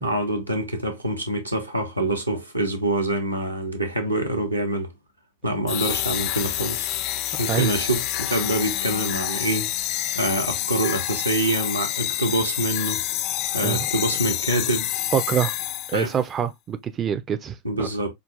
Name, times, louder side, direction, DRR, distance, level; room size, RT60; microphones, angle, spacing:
voice 1, 0.0-4.9 5.4-6.9 7.4-9.7 10.1-13.0 13.5-14.9 15.9-16.1 17.6-18.1, right 1 dB, 85° right, 0.9 m, -25 dB
sound 1, 5.7-16.2, left 13 dB, 40° left, 0.4 m, -27 dB
voice 2, 15.1-15.5 15.9-17.9, right 8 dB, 25° right, 0.4 m, -25 dB
5.0 x 2.3 x 2.5 m
figure-of-eight pair, 90°, 0 cm